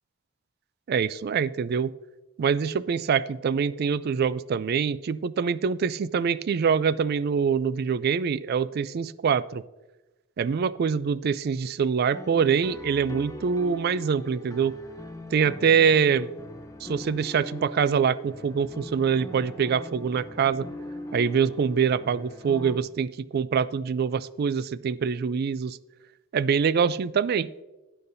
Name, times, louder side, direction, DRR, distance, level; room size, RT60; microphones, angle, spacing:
voice 1, 0.9-1.9 2.4-9.6 10.4-14.7 15.3-16.3 16.8-20.7 21.1-25.8 26.3-27.5, right 6 dB, 50° right, 18 dB, 0.3 m, -24 dB
sound 1, 12.1-22.8, left 1 dB, 15° left, 0.7 m, -41 dB
12.0 x 9.7 x 2.7 m, 1.1 s
head